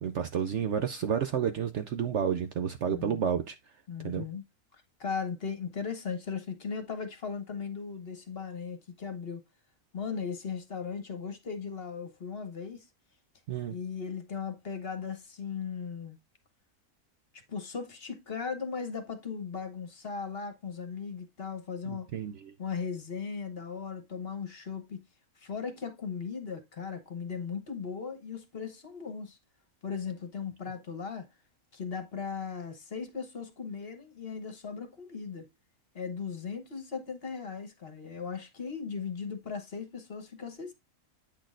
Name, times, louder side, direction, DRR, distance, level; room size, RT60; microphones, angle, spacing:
voice 1, 0.0-3.5 4.0-4.3 13.5-13.7 22.1-22.5, right 8 dB, 60° right, 0.8 m, -30 dB
voice 2, 2.9-3.3 3.9-4.4 4.7-9.4 9.9-12.9 13.7-16.2 17.5-22.1 22.6-25.0 25.4-29.4 29.8-31.3 31.7-35.5 35.9-40.7, left 6 dB, 45° left, 1.2 m, -37 dB
8.5 x 6.1 x 2.5 m
omnidirectional pair, 1.6 m